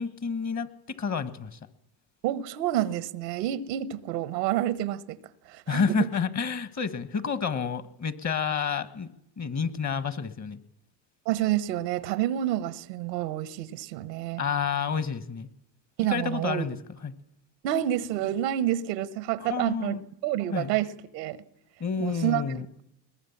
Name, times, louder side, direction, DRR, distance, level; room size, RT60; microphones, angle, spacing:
voice 1, 0.0-1.6 5.7-9.1 9.4-10.6 14.4-15.5 16.1-16.8 17.0-17.1 19.4-20.0 20.5-20.7 21.8-22.6, left 6 dB, 35° left, 1.6 m, -29 dB
voice 2, 2.2-5.2 5.5-6.1 11.3-14.4 16.0-16.7 17.6-20.9 21.1-21.4 22.0-22.4, right 13 dB, 90° right, 1.2 m, -28 dB
21.5 x 18.5 x 7.3 m
supercardioid pair, 80°, 47 cm